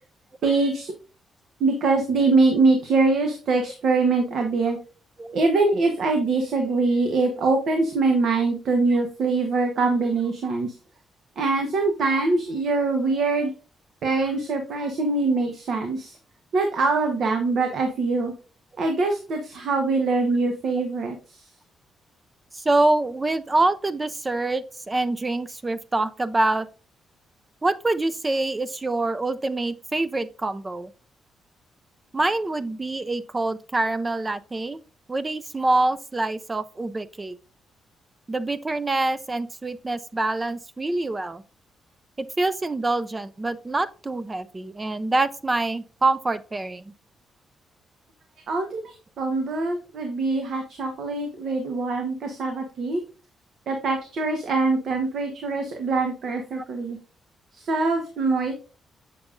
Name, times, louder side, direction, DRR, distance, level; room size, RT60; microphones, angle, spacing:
voice 1, 0.4-0.9 1.6-4.8 5.3-10.7 11.4-13.5 14.0-16.2 16.5-18.3 18.8-21.4 48.5-53.0 53.7-57.0 57.5-58.5, right 3 dB, 70° right, 1.0 m, -23 dB
voice 2, 22.5-26.7 27.6-30.9 32.1-34.8 35.1-37.3 38.3-41.4 42.2-46.9 56.5-56.6, right 2 dB, 20° right, 0.4 m, -25 dB
7.0 x 6.6 x 2.5 m
cardioid pair, 95°, 0 cm